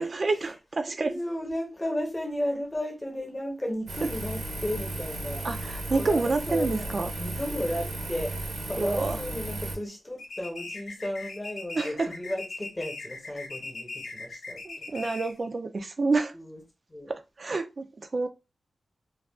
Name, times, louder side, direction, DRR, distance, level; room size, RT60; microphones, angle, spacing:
voice 1, 0.0-1.1 5.4-7.1 8.8-9.2 11.8-12.1 14.6-16.3 17.1-18.3, right 3 dB, 45° right, 0.4 m, -28 dB
voice 2, 0.9-5.4 5.9-8.3 8.6-14.9 16.3-16.6 16.9-17.1, left 1 dB, 20° left, 1.0 m, -34 dB
Engine, 3.9-9.8, right 1 dB, 75° right, 0.7 m, -35 dB
sound 1, 10.2-15.5, left 3 dB, 70° left, 0.5 m, -40 dB
2.4 x 2.3 x 3.4 m
wide cardioid pair, 120°, 0 cm